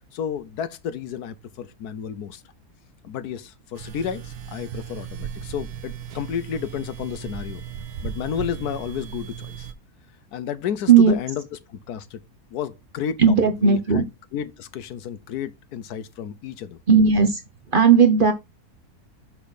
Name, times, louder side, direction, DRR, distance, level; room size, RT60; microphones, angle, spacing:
voice 1, 0.1-2.4 3.0-7.6 8.0-9.7 10.3-11.4 11.7-12.2 12.5-13.3 13.6-14.0 14.3-16.8, left 8 dB, 80° left, 1.3 m, -31 dB
sound 1, 3.7-9.7, right 8 dB, 75° right, 1.4 m, -36 dB
voice 2, 13.2-14.0 16.9-17.4 17.7-18.3, right 6 dB, 40° right, 0.8 m, -15 dB
6.0 x 6.0 x 4.1 m
omnidirectional pair, 1.6 m